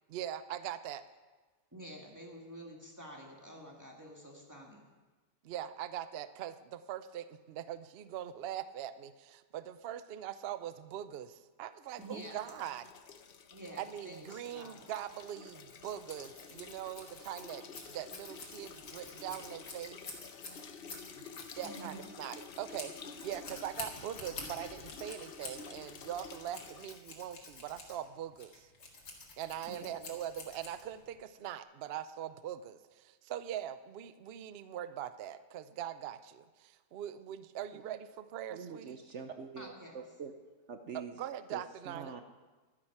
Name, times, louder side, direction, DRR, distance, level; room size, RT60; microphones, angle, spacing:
voice 1, 0.1-1.0 5.4-12.9 13.8-20.3 21.1-28.7 29.3-39.0 41.1-42.1, right 10 dB, 85° right, 13 dB, 0.5 m, -42 dB
voice 2, 1.7-4.8 12.0-12.4 13.5-14.9 21.6-22.1 29.7-29.9 39.6-40.0, right 1 dB, 10° right, -1 dB, 1.8 m, -49 dB
sound 1, 12.0-27.1, left 6 dB, 55° left, 0.6 m, -51 dB
Scissors, 15.5-31.1, left 3 dB, 85° left, 2.5 m, -49 dB
voice 3, 38.5-40.3 40.7-41.2 41.5-41.6 41.9-42.2, right 6 dB, 55° right, 7 dB, 0.8 m, -44 dB
13.0 x 9.9 x 5.9 m, 1.3 s
omnidirectional pair, 1.8 m